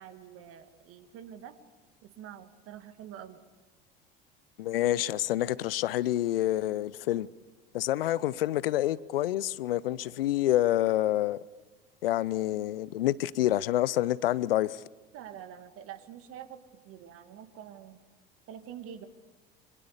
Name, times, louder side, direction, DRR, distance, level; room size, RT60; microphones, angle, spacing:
voice 1, 0.0-1.6 2.0-3.4 15.1-18.0 18.5-19.1, right 9 dB, 50° right, 2.2 m, -46 dB
voice 2, 4.6-7.3 7.7-11.4 12.0-14.8, left 14 dB, 70° left, 0.7 m, -27 dB
27.5 x 25.0 x 7.0 m
figure-of-eight pair, 65°, 30 cm